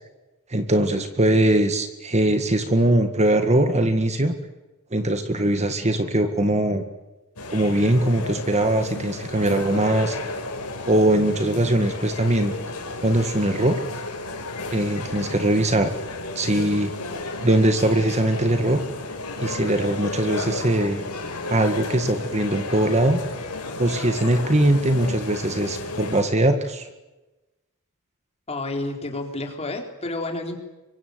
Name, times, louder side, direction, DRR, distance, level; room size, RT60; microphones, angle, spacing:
voice 1, 0.5-4.3 4.9-6.8 7.5-10.2 10.9-12.5 13.0-13.8 14.7-15.9 16.4-16.9 17.4-18.8 19.4-21.0 21.5-23.2 23.8-26.9, right 1 dB, 30° right, 7 dB, 1.8 m, -21 dB
sound 1, 7.4-26.2, left 2 dB, 85° left, 5.7 m, -33 dB
voice 2, 28.5-30.6, left 2 dB, 30° left, 3 dB, 4.0 m, -30 dB
25.5 x 24.0 x 8.1 m, 1.1 s
head